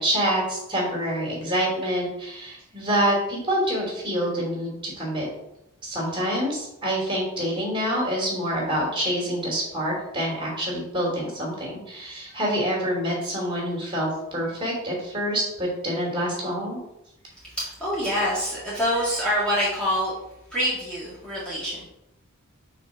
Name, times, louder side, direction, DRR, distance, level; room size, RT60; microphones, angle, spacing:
voice 1, 0.0-5.3 5.8-16.8, equal, 25° right, -3 dB, 2.7 m, -26 dB
voice 2, 17.3-20.1 20.5-21.9, equal, 5° left, -9 dB, 1.9 m, -26 dB
6.0 x 4.1 x 5.8 m, 0.84 s
head